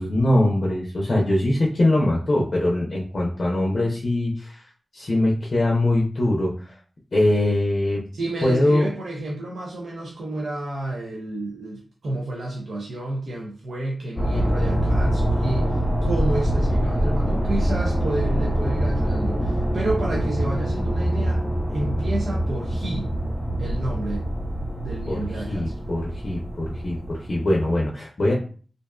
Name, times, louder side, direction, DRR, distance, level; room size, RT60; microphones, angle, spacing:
voice 1, 0.0-4.6 4.9-6.7 7.1-8.0 8.4-8.9 25.1-25.2 25.5-28.3, left 1 dB, 60° left, -2 dB, 0.5 m, -22 dB
voice 2, 8.1-21.4 21.7-23.1 23.6-24.3 24.7-25.7, right 2 dB, 85° right, -3 dB, 0.5 m, -30 dB
sound 1, 14.2-27.7, equal, 20° left, 0.7 m, -24 dB
2.5 x 2.2 x 2.2 m, 0.40 s
cardioid pair, 50°, 0 cm